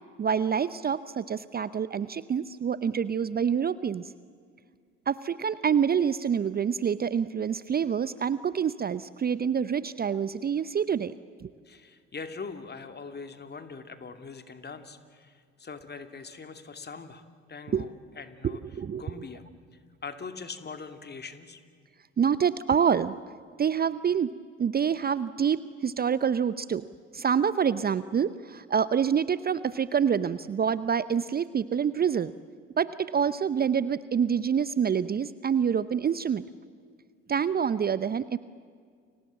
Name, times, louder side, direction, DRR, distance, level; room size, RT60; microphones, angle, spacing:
voice 1, 0.2-4.1 5.1-11.1 11.4-11.5 17.7-17.8 18.4-19.3 22.2-23.1 23.6-24.3 24.6-26.9 27.1-32.3 32.8-36.4 37.3-38.4, right 7 dB, 30° right, 16 dB, 0.7 m, -27 dB
voice 2, 11.7-17.2 17.5-19.4 20.0-21.6, left 4 dB, 30° left, 9 dB, 2.5 m, -42 dB
30.0 x 24.5 x 7.5 m, 2.1 s
figure-of-eight pair, 55°, 33 cm